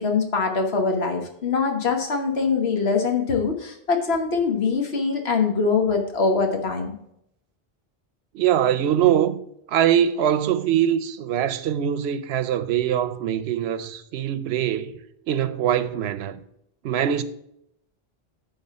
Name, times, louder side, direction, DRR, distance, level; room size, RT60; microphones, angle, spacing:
voice 1, 0.0-6.9, left 4 dB, 80° left, 1.5 m, -23 dB
voice 2, 8.3-9.4 9.7-15.0 15.3-16.4 16.8-17.2, right 10 dB, 80° right, 0.9 m, -22 dB
9.6 x 3.9 x 6.7 m
omnidirectional pair, 1.1 m